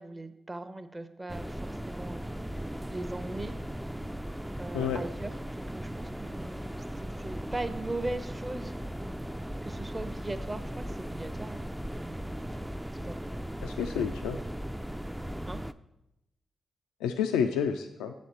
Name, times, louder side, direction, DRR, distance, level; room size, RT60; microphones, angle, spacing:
voice 1, 0.0-2.3 2.9-3.5 4.6-8.7 9.6-11.7 13.0-13.2 13.8-14.1 15.5-15.6, right 2 dB, 25° right, 10 dB, 0.7 m, -39 dB
sound 1, 1.3-15.7, equal, 5° right, 0.3 m, -37 dB
voice 2, 13.6-14.4 17.0-18.1, left 7 dB, 90° left, 6 dB, 0.3 m, -29 dB
7.6 x 4.2 x 6.3 m, 0.88 s
supercardioid pair, 45°, 0 cm